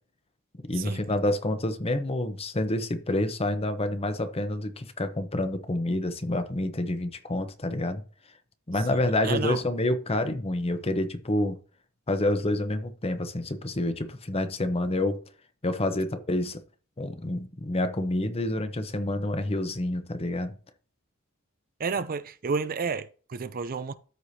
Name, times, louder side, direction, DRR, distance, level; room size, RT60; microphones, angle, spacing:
voice 1, 0.7-8.0 8.7-11.6 12.1-15.2 15.6-16.6 17.0-20.5, left 1 dB, 25° left, 0.9 m, -28 dB
voice 2, 9.2-9.6 21.8-23.9, right 5 dB, 40° right, 0.5 m, -31 dB
13.5 x 4.9 x 2.8 m
head